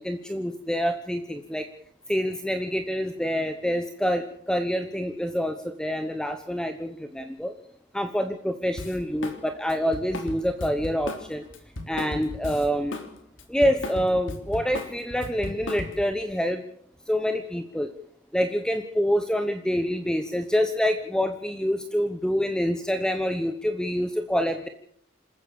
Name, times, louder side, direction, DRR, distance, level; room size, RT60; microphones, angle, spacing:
voice 1, 0.0-1.7 2.1-7.5 7.9-11.5 11.9-13.0 13.5-16.6 17.1-17.9 18.3-24.7, equal, 5° left, 8 dB, 1.0 m, -26 dB
Drum kit, 8.8-9.4 9.7-13.1 13.4-16.1, left 1 dB, 75° left, 3.3 m, -35 dB
27.5 x 14.5 x 7.2 m, 0.68 s
head